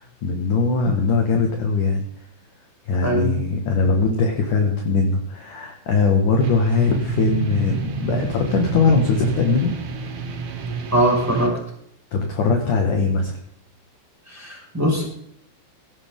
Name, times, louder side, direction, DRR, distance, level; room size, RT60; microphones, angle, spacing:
voice 1, 0.0-2.0 2.9-9.7 12.1-13.4, left 4 dB, 55° left, 2 dB, 2.6 m, -21 dB
voice 2, 3.0-3.4 10.9-11.6 14.3-15.0, right 1 dB, 5° right, -2 dB, 5.2 m, -21 dB
sound 1, 6.4-11.5, right 4 dB, 70° right, 4.5 m, -28 dB
18.0 x 13.0 x 3.8 m, 0.68 s
omnidirectional pair, 5.6 m